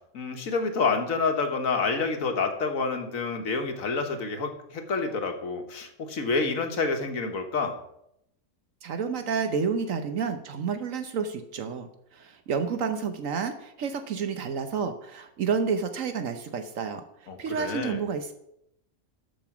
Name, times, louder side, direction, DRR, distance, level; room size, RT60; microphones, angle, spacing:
voice 1, 0.1-7.8 17.3-18.0, left 4 dB, 85° left, 5 dB, 1.7 m, -28 dB
voice 2, 8.8-18.3, right 6 dB, 75° right, 8 dB, 1.2 m, -30 dB
13.0 x 5.3 x 6.0 m, 0.78 s
omnidirectional pair, 1.4 m